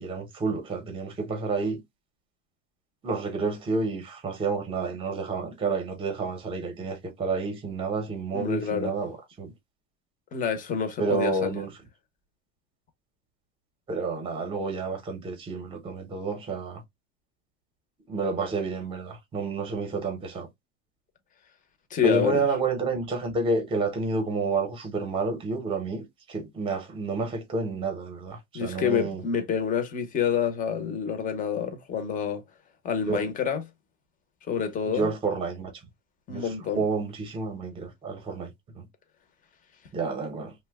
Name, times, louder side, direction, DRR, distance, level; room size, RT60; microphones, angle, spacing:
voice 1, 0.0-1.8 3.0-9.5 11.0-11.7 13.9-16.8 18.1-20.5 22.0-29.2 33.1-33.2 34.9-35.7 36.3-38.9 39.9-40.5, right 4 dB, 15° right, 0.8 m, -30 dB
voice 2, 8.3-8.9 10.3-11.6 21.9-22.4 28.5-32.4 32.8-33.6 34.5-35.1 36.3-36.8, left 7 dB, 25° left, 0.7 m, -28 dB
2.7 x 2.2 x 3.3 m
cardioid pair, 160°, 33 cm